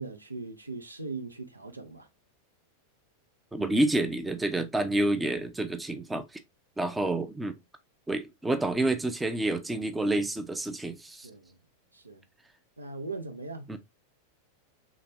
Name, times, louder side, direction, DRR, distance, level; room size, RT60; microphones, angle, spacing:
voice 1, 0.0-2.1 11.2-11.6 11.9-12.3 12.8-13.7, right 3 dB, 85° right, 0.4 m, -39 dB
voice 2, 3.5-6.2 6.8-7.6 8.1-11.3 13.7-13.8, right 2 dB, 5° right, 0.5 m, -28 dB
3.4 x 2.9 x 2.6 m
figure-of-eight pair, 90°, 0 cm